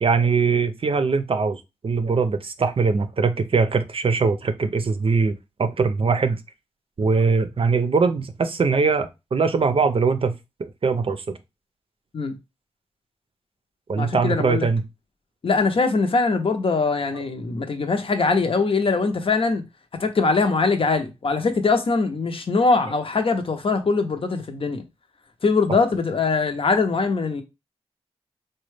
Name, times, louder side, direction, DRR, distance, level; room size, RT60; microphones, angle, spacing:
voice 1, 0.0-6.4 7.0-10.3 10.6-11.4 13.9-14.8, right 4 dB, 55° right, 0.5 m, -22 dB
voice 2, 14.0-14.7 15.4-19.6 20.0-24.8 25.4-27.4, left 4 dB, 55° left, 0.7 m, -22 dB
4.0 x 2.2 x 3.2 m
wide cardioid pair, 90°, 11 cm